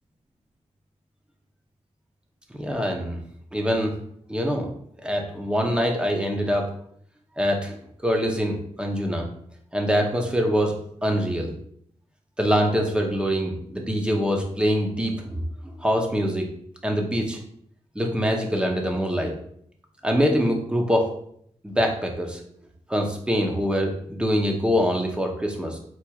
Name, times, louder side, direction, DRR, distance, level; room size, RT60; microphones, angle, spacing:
voice 1, 2.5-3.2 3.5-3.9 4.3-4.7 5.0-6.6 7.4-9.3 9.7-10.8 11.0-11.5 12.4-15.5 15.8-16.5 16.8-17.4 17.9-19.3 20.0-21.1 21.6-22.4 22.9-25.8, equal, 10° right, 2 dB, 0.7 m, -24 dB
4.5 x 4.4 x 2.3 m, 0.67 s
wide cardioid pair, 115°, 12 cm